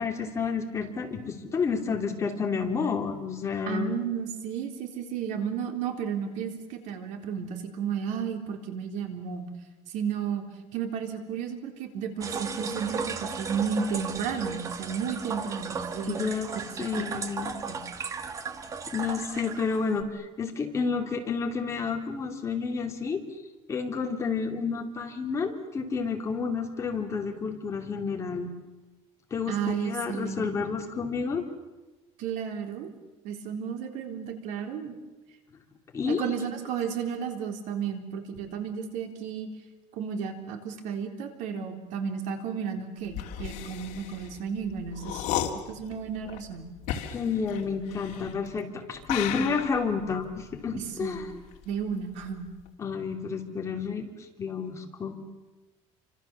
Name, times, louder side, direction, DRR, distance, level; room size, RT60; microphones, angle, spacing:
voice 1, 0.0-3.9 16.1-16.5 16.8-17.5 18.9-23.2 23.7-28.5 29.3-31.5 35.9-36.3 47.1-51.3 52.8-54.1 54.4-55.2, left 5 dB, 25° left, 3 dB, 2.8 m, -30 dB
voice 2, 3.7-9.5 9.9-10.4 10.7-16.2 16.8-17.1 17.7-17.8 29.5-30.5 32.2-32.9 33.2-35.0 36.1-39.5 39.9-45.3 45.7-46.7 50.7-51.3 51.7-52.5, right 7 dB, 70° right, 5 dB, 3.8 m, -33 dB
sound 1, 12.2-20.0, right 5 dB, 25° right, 1.5 m, -35 dB
sound 2, 43.1-48.6 49.0-51.9 52.2-52.7, left 11 dB, 70° left, 2.9 m, -35 dB
29.5 x 25.5 x 7.2 m, 1.1 s
cardioid pair, 170°, 13 cm